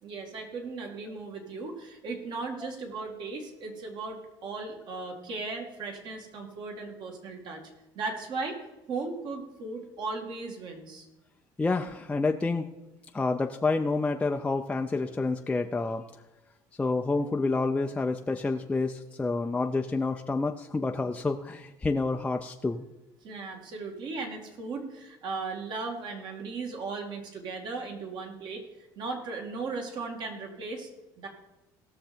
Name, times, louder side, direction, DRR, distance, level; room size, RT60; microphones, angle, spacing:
voice 1, 0.0-7.6 8.0-8.6 8.9-11.1 23.2-28.6 29.0-30.9 31.2-31.3, right 3 dB, 55° right, 3 dB, 2.4 m, -37 dB
voice 2, 11.6-12.7 13.1-16.1 16.8-22.9, left 3 dB, 15° left, 3 dB, 0.5 m, -28 dB
17.5 x 6.6 x 4.4 m, 0.99 s
cardioid pair, 115°, 9 cm